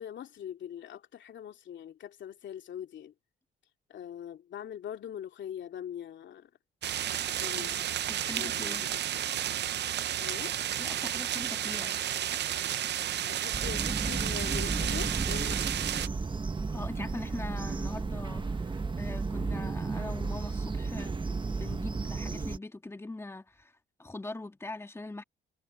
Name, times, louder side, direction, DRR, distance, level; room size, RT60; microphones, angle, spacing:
voice 1, 0.0-3.1 3.9-6.5 7.3-7.8 8.3-9.3 10.2-10.6 12.9-15.9, left 9 dB, 65° left, 2.9 m, -42 dB
sound 1, 6.8-16.1, right 11 dB, 60° right, 0.7 m, -32 dB
voice 2, 8.1-8.8 10.8-11.9 16.7-23.7 24.0-25.2, left 2 dB, 15° left, 1.9 m, -42 dB
sound 2, 13.5-22.6, right 4 dB, 25° right, 1.3 m, -33 dB
cardioid pair, 90°, 20 cm